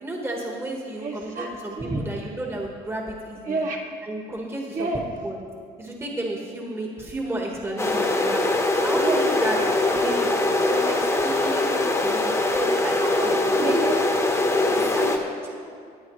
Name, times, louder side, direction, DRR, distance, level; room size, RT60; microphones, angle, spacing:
voice 1, 0.0-3.6 4.1-4.8 5.2-5.4 5.8-8.4 8.8-9.6 9.9-13.8 14.7-15.2 15.6-15.8, right 1 dB, 15° right, -1 dB, 1.5 m, -32 dB
voice 2, 1.0-2.1 3.4-4.0 4.7-5.1 9.0-10.1 13.0-14.0, right 3 dB, 50° right, -1 dB, 1.9 m, -31 dB
sound 1, 7.8-15.2, left 2 dB, 15° left, 1.2 m, -22 dB
19.0 x 8.4 x 3.2 m, 2.3 s
cardioid pair, 110°, 17 cm